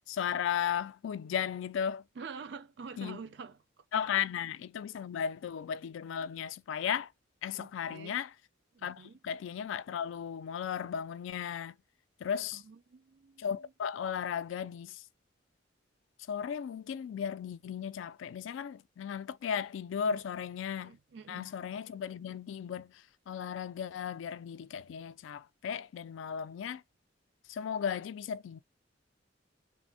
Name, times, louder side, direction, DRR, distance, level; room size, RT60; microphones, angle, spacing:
voice 1, 0.0-2.0 3.0-3.2 3.9-7.1 7.4-8.3 8.8-11.8 12.2-12.6 13.4-15.0 16.3-21.0 21.3-26.8 27.5-28.6, left 8 dB, 75° left, 0.3 m, -35 dB
voice 2, 2.2-3.8 7.5-8.2 8.7-9.2 12.5-13.7 20.1-20.2 20.8-21.5, right 5 dB, 60° right, 0.4 m, -47 dB
3.3 x 2.1 x 2.6 m
head